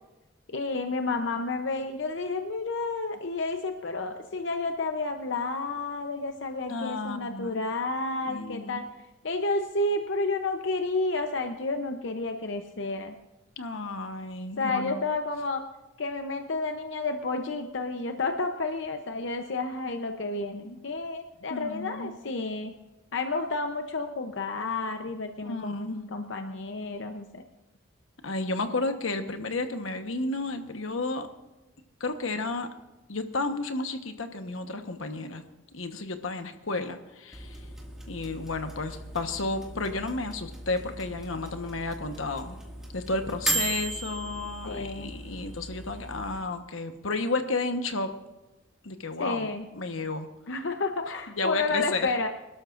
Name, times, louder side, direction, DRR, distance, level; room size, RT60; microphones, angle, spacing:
voice 1, 0.5-8.8 9.2-13.2 14.6-15.6 16.0-22.8 23.1-27.4 44.6-45.1 49.2-49.7 50.5-52.3, left 3 dB, 65° left, 6 dB, 0.7 m, -31 dB
voice 2, 6.7-7.6 8.3-8.8 13.6-15.0 21.5-22.1 25.4-26.0 28.2-31.3 32.0-32.7 33.1-35.4 35.7-37.6 38.1-42.6 42.9-48.1 48.8-50.3 51.4-52.1, left 3 dB, 90° left, 7 dB, 1.2 m, -32 dB
sound 1, 37.3-46.4, right 2 dB, 5° right, 2.0 m, -37 dB
26.0 x 12.5 x 2.6 m, 1.0 s
head